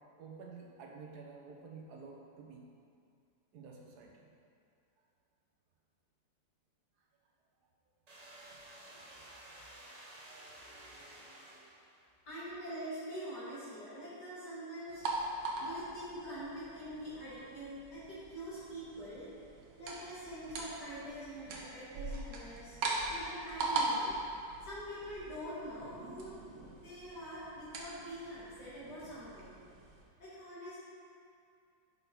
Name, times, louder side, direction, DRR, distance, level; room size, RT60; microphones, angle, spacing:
voice 1, 0.2-2.7 3.5-4.3 11.4-11.6 27.4-27.5, right 4 dB, 70° right, 0 dB, 1.3 m, -51 dB
sound 1, 8.1-12.1, right 1 dB, 40° right, 0.6 m, -53 dB
voice 2, 12.3-15.0 15.6-19.3 19.8-22.8 23.1-24.2 24.6-26.3 26.8-29.6 30.2-30.8, equal, 70° left, -11 dB, 2.5 m, -44 dB
sound 2, 14.9-30.0, right 2 dB, 90° right, 1.5 m, -41 dB
5.7 x 5.5 x 4.4 m, 2.4 s
omnidirectional pair, 1.9 m